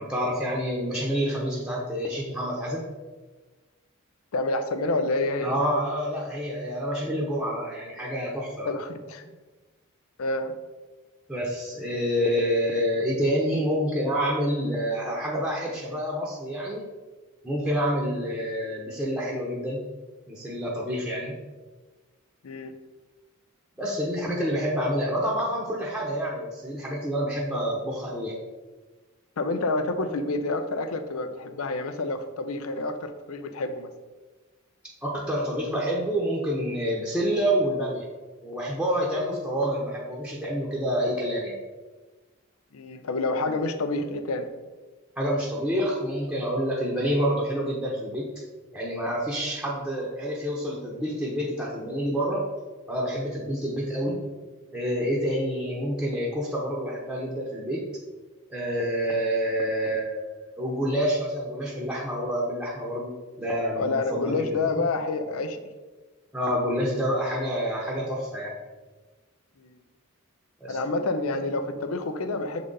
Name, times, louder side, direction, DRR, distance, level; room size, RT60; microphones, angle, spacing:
voice 1, 0.0-2.9 5.4-8.7 11.3-16.8 17.4-19.9 20.3-21.4 23.8-28.4 35.0-38.1 38.4-41.6 45.2-48.3 48.7-52.5 52.9-54.2 54.7-57.8 58.5-64.8 66.3-68.6 70.6-70.8, equal, 5° right, -3 dB, 0.8 m, -28 dB
voice 2, 4.3-5.5 8.6-9.2 10.2-10.5 22.4-22.7 29.4-33.9 42.7-44.5 63.8-65.6 69.6-69.7 70.7-72.6, left 2 dB, 85° left, 8 dB, 0.6 m, -28 dB
6.5 x 3.9 x 3.8 m, 1.3 s
head